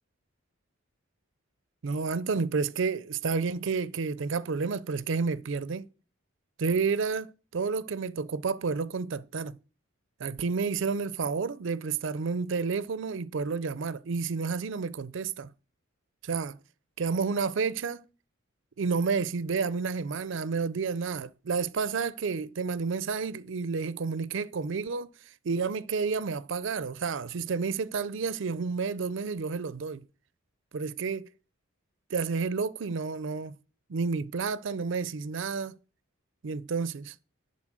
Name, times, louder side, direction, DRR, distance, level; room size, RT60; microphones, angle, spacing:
voice 1, 1.8-5.9 6.6-9.6 10.2-15.5 16.2-16.6 17.0-18.0 18.8-25.1 25.4-30.0 30.7-31.3 32.1-33.5 33.9-35.8 36.4-37.1, right 5 dB, 65° right, 0.5 m, -30 dB
11.0 x 4.2 x 6.2 m
head